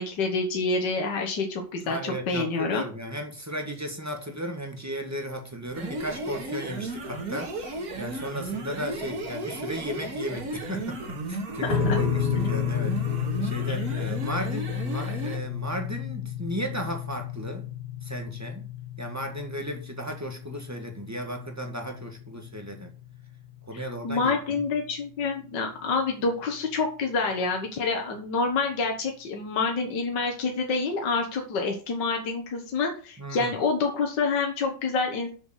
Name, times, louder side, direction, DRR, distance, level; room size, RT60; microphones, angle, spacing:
voice 1, 0.0-2.8 11.6-12.0 23.7-35.3, left 4 dB, 70° left, 2.1 m, -27 dB
voice 2, 1.8-11.0 11.3-17.6 18.0-18.6 19.0-22.9 23.7-24.6 33.2-33.5, equal, 10° right, 1.6 m, -35 dB
sound 1, 5.7-15.5, right 2 dB, 55° right, 2.3 m, -34 dB
sound 2, 11.7-24.2, left 8 dB, 5° left, 3.3 m, -32 dB
7.0 x 6.8 x 6.5 m
omnidirectional pair, 2.0 m